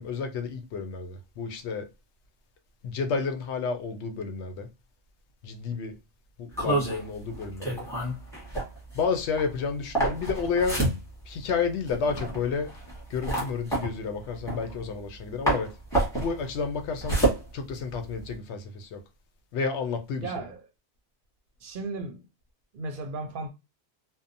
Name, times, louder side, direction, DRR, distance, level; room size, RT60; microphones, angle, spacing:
voice 1, 0.0-1.9 2.8-4.7 5.4-6.0 6.4-7.9 8.9-10.9 11.3-12.8 13.1-15.8 16.1-17.3 17.5-19.0 19.5-20.3, left 5 dB, 85° left, 0.9 m, -31 dB
sound 1, 6.5-15.2 15.5-18.3, right 2 dB, 5° left, 1.1 m, -29 dB
voice 2, 20.2-20.6 21.6-22.3 22.7-23.5, right 3 dB, 60° right, 0.6 m, -35 dB
2.7 x 2.0 x 2.5 m
omnidirectional pair, 1.1 m